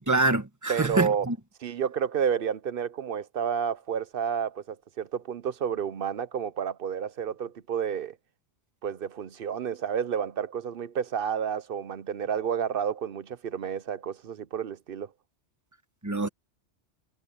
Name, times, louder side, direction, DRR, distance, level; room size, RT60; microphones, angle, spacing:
voice 1, 0.0-1.3 16.0-16.3, right 2 dB, 15° right, 1.2 m, -25 dB
voice 2, 0.7-1.3 1.6-8.2 8.8-15.1, right 7 dB, 60° right, 0.8 m, -30 dB
omnidirectional pair, 1.2 m